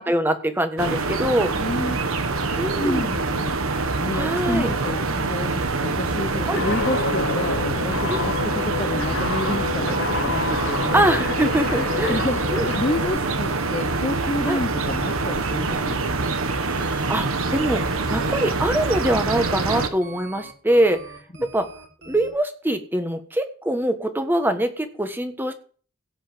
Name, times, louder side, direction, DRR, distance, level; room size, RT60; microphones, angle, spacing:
voice 1, 0.1-1.5 2.6-3.1 4.1-4.7 6.5-6.6 8.1-8.3 10.9-12.2 12.5-12.8 14.5-14.6 16.9-17.2 17.5-21.0 21.5-21.7 22.0-25.5, right 1 dB, 10° right, 7 dB, 1.3 m, -23 dB
sound 1, 0.8-19.9, right 3 dB, 90° right, 1.3 m, -25 dB
voice 2, 1.6-2.0 2.4-2.5 2.8-3.5 4.0-11.1 12.1-12.4 12.8-16.3, left 1 dB, 30° left, 5 dB, 0.9 m, -29 dB
Guitar, 6.5-13.1, left 4 dB, 65° left, 1.0 m, -28 dB
sound 2, 10.7-22.3, right 3 dB, 55° right, 4.2 m, -43 dB
16.5 x 5.6 x 7.4 m, 0.42 s
head